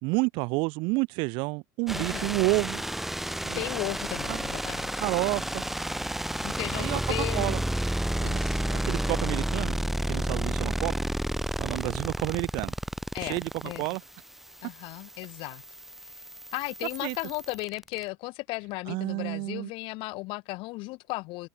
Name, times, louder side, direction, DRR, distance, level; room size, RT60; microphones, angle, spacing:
voice 1, 0.0-2.8 3.4-3.6 4.3-4.4 5.0-5.6 6.7-7.0 7.3-7.6 8.2-9.8 10.1-10.9 11.6-12.7 13.2-13.5 13.8-14.0 17.0-17.2 18.9-19.7, right 28 dB, 60° right, 0.8 m, -30 dB
voice 2, 1.9-2.3 3.5-5.0 6.4-7.6 8.2-8.7 13.1-13.8 14.6-15.6 16.0-16.1 16.5-21.5, left 23 dB, 55° left, 1.6 m, -36 dB
sound 1, 1.9-18.0, right 1 dB, 5° right, 0.4 m, -31 dB
hypercardioid pair, 95°, 10 cm